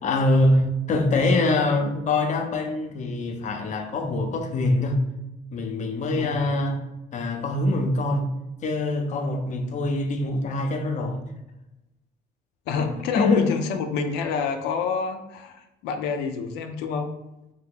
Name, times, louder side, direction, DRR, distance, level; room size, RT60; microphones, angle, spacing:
voice 1, 0.0-5.0 5.5-6.8 7.1-8.3 8.6-11.2 12.8-12.9 13.1-13.5, left 2 dB, 45° left, 0.6 m, -24 dB
voice 2, 6.2-6.5 12.7-17.1, left 5 dB, 90° left, 0.4 m, -28 dB
2.8 x 2.8 x 3.8 m
cardioid pair, 110°, 17 cm